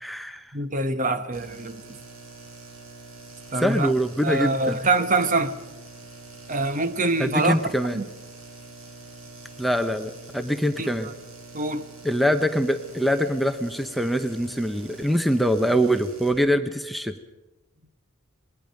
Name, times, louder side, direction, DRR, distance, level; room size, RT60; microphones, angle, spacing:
voice 1, 0.0-0.5 3.6-4.8 7.2-8.0 9.6-11.1 12.0-17.2, equal, ahead, 0.8 m, -24 dB
voice 2, 0.5-1.8 3.5-3.9 4.2-5.6 6.5-7.6 7.9-8.1 10.8-11.1 11.5-11.9, right 2 dB, 35° right, 1.1 m, -24 dB
sound 1, 1.3-16.3, right 2 dB, 70° right, 6.5 m, -45 dB
27.0 x 21.0 x 5.3 m
head